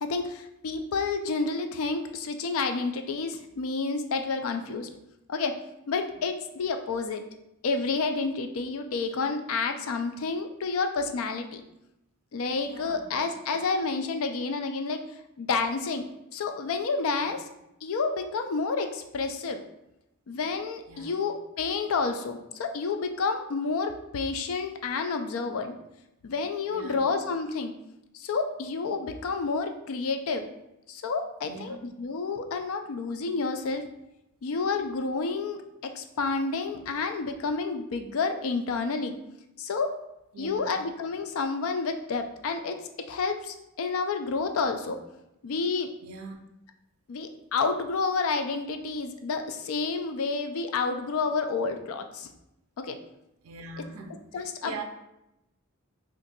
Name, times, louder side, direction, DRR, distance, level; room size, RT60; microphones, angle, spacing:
voice 1, 0.0-4.9 5.3-5.5 5.9-7.2 7.6-11.6 12.3-15.0 15.4-16.0 16.3-17.5 17.8-19.6 20.3-25.7 26.2-27.7 28.1-30.5 30.9-33.8 34.4-35.6 36.0-39.1 39.6-39.9 40.4-42.8 43.1-45.0 45.4-45.9 47.1-52.3 52.8-53.0 54.3-54.8, left 4 dB, 70° left, 6 dB, 0.4 m, -29 dB
voice 2, 12.7-13.0 17.2-17.4 20.9-21.1 26.7-27.0 31.4-31.8 40.3-40.7 46.0-46.4 53.4-54.8, right 4 dB, 80° right, 5 dB, 0.4 m, -42 dB
2.6 x 2.5 x 3.8 m, 0.87 s
head